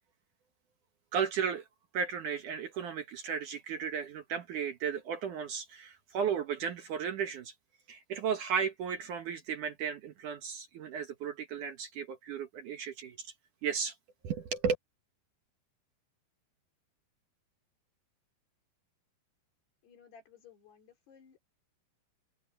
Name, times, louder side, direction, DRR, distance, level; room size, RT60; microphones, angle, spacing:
voice 1, 1.1-1.6 1.9-7.5 7.9-13.3 13.6-14.0 14.2-14.8, right 7 dB, 60° right, 2.4 m, -34 dB
voice 2, 19.8-21.4, left 6 dB, 75° left, 6.1 m, -57 dB
omnidirectional pair, 4.8 m